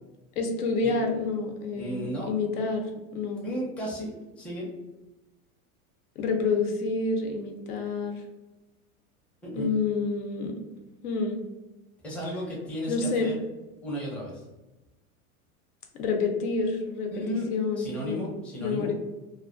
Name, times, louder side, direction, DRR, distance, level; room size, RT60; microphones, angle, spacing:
voice 1, 0.4-3.5 6.2-8.2 9.6-10.5 11.0-11.4 12.9-13.3 15.9-18.3 18.6-18.9, left 4 dB, 85° left, 3 dB, 0.7 m, -28 dB
voice 2, 1.7-2.3 3.4-4.7 9.4-9.7 12.0-13.4 13.8-14.4 17.1-17.5 17.8-18.9, equal, 5° left, -4 dB, 0.5 m, -34 dB
2.3 x 2.2 x 2.4 m, 1.1 s
hypercardioid pair, 115°, 44 cm